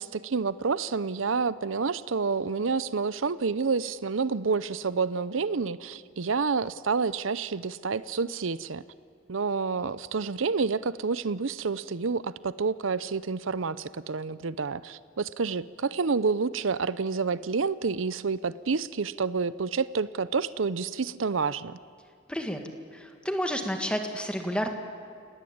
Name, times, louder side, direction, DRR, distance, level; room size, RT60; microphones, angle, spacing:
voice 1, 0.0-8.8 9.3-21.8, right 4 dB, 80° right, 16 dB, 0.7 m, -29 dB
voice 2, 22.3-22.6 22.9-24.7, equal, 5° left, 5 dB, 1.8 m, -30 dB
30.0 x 18.5 x 8.8 m, 2.4 s
head